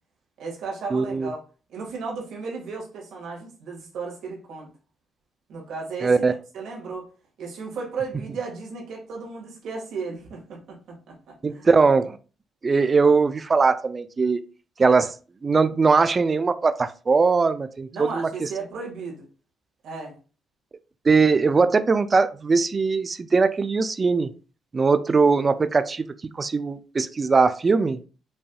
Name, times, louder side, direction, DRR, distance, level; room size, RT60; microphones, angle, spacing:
voice 1, 0.4-1.4 1.7-4.7 5.5-6.1 6.5-7.1 7.4-10.8 11.1-11.7 17.9-19.3 19.8-20.1, right 4 dB, 75° right, 1.7 m, -34 dB
voice 2, 0.9-1.3 6.0-6.3 11.4-12.2 12.6-14.4 14.8-15.1 15.4-18.5 21.1-24.3 24.7-26.1 26.4-28.0, right 4 dB, 35° right, 0.4 m, -20 dB
5.3 x 2.6 x 2.3 m
cardioid pair, 85°, 0 cm